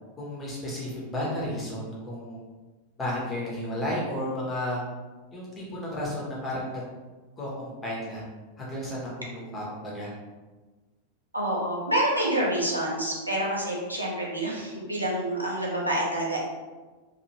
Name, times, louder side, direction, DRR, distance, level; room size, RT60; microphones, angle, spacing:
voice 1, 0.2-2.4 3.0-4.8 5.3-6.8 7.4-8.2 8.6-10.1, left 1 dB, 15° left, -6 dB, 1.2 m, -33 dB
voice 2, 11.3-16.4, right 1 dB, 85° right, -4 dB, 0.8 m, -27 dB
3.0 x 2.9 x 3.0 m, 1.3 s
figure-of-eight pair, 90°, 0 cm